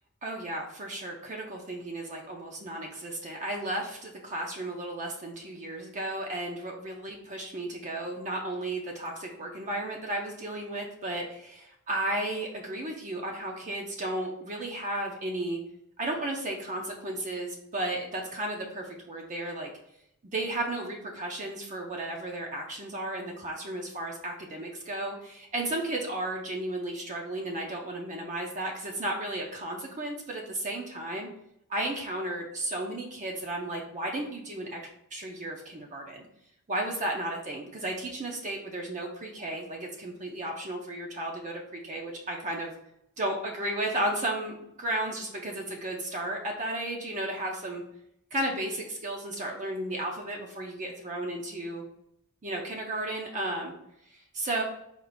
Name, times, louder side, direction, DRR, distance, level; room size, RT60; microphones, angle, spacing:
voice 1, 0.2-15.6 16.0-19.7 20.3-31.3 31.7-34.8 35.1-36.2 36.7-42.7 43.2-47.8 48.3-51.8 52.4-53.7 54.3-54.6, right 1 dB, 35° right, 0 dB, 0.6 m, -34 dB
4.3 x 2.5 x 4.0 m, 0.77 s
head